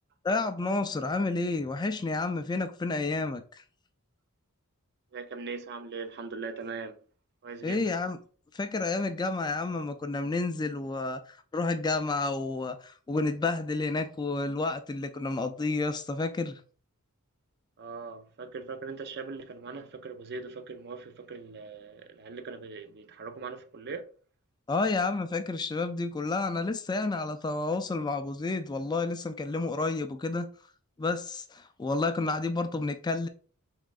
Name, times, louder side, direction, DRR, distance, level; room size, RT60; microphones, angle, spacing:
voice 1, 0.2-3.6 7.6-8.2 8.5-16.6 24.7-30.5 31.0-33.3, left 3 dB, 20° left, 0.3 m, -30 dB
voice 2, 5.1-7.0 7.4-7.8 17.8-24.1, right 4 dB, 50° right, 0.5 m, -40 dB
5.9 x 3.6 x 2.4 m
head